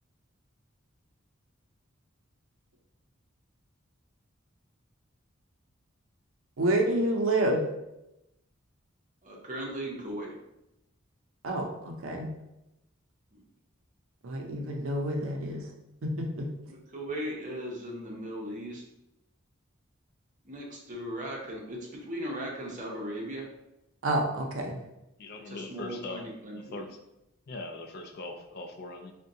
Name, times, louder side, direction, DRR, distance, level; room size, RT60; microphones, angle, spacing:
voice 1, 6.6-7.7 11.4-12.3 14.2-15.6 16.0-16.5 24.0-24.8, right 1 dB, 80° right, 2 dB, 0.6 m, -28 dB
voice 2, 9.2-10.3 13.3-13.4 16.7-18.8 20.4-23.5 25.5-26.8, equal, 40° right, -2 dB, 0.7 m, -38 dB
voice 3, 25.2-26.3 26.7-27.0 27.5-29.1, left 2 dB, 50° left, 4 dB, 0.4 m, -40 dB
3.7 x 2.2 x 2.7 m, 0.88 s
head